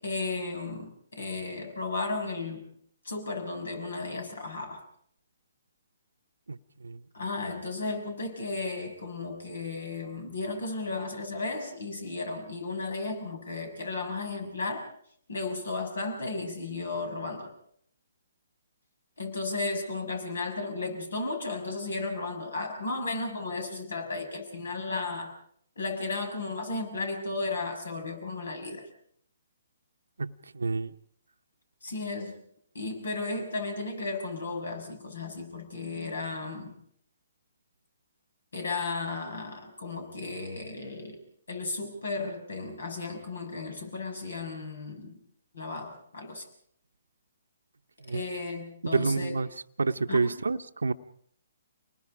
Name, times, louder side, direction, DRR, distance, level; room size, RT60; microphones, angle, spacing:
voice 1, 0.0-2.7 3.0-4.8 7.1-14.9 15.3-17.5 19.2-25.3 25.8-28.9 31.8-32.3 32.7-36.8 38.5-41.2 41.5-45.2 45.5-46.5 48.1-49.4 50.1-50.4, left 3 dB, 75° left, 6 dB, 6.2 m, -34 dB
voice 2, 30.2-30.9 48.0-48.2 48.9-49.5 49.8-50.9, right 4 dB, 85° right, 8 dB, 0.9 m, -28 dB
29.0 x 20.5 x 5.0 m, 0.65 s
hypercardioid pair, 135°, 0 cm